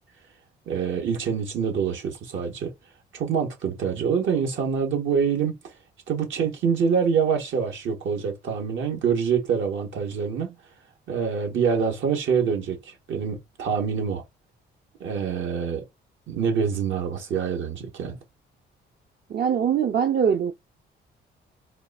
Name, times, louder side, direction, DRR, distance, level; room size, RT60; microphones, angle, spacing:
voice 1, 0.6-2.7 3.1-5.6 6.1-10.5 11.1-14.2 15.0-15.8 16.3-18.2, right 6 dB, 75° right, 1.9 m, -25 dB
voice 2, 19.3-20.5, right 8 dB, 55° right, 0.7 m, -22 dB
4.4 x 2.3 x 4.2 m
cardioid pair, 90°, 20 cm